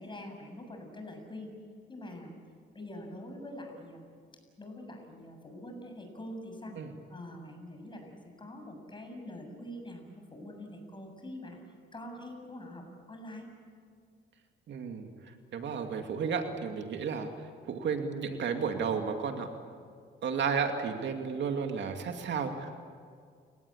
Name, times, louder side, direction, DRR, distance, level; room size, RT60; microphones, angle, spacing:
voice 1, 0.0-1.5 1.9-2.3 2.7-4.2 4.6-6.8 7.1-11.6 11.9-13.5, left 1 dB, 25° left, 4 dB, 7.3 m, -44 dB
voice 2, 14.7-19.5 20.2-22.7, right 6 dB, 65° right, 5 dB, 2.5 m, -33 dB
29.5 x 18.5 x 8.7 m, 2.1 s
cardioid pair, 90°, 20 cm